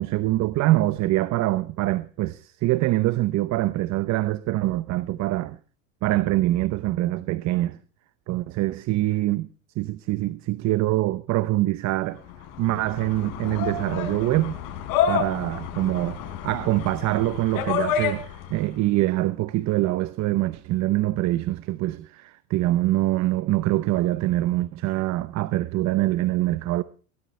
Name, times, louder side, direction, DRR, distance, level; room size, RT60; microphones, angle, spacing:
voice 1, 0.0-5.6 6.0-7.8 8.3-9.5 9.8-12.2 12.6-14.6 15.1-26.8, right 16 dB, 40° right, 0.8 m, -24 dB
sound 1, 12.3-18.6, left 8 dB, 50° left, 4.6 m, -29 dB
22.5 x 17.5 x 3.2 m
supercardioid pair, 110°, 42 cm